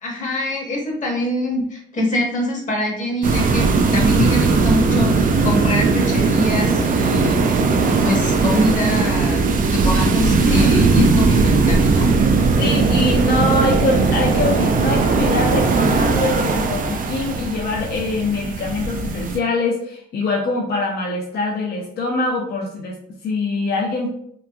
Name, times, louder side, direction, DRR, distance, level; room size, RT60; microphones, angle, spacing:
voice 1, 0.0-9.4 9.7-12.1, left 1 dB, 40° left, -1 dB, 1.0 m, -23 dB
sound 1, 3.2-19.4, right 4 dB, 45° right, 0.4 m, -18 dB
voice 2, 12.6-23.0 23.2-24.1, left 3 dB, 55° left, -2 dB, 0.6 m, -23 dB
3.0 x 2.4 x 2.2 m, 0.65 s
cardioid pair, 90°, 20 cm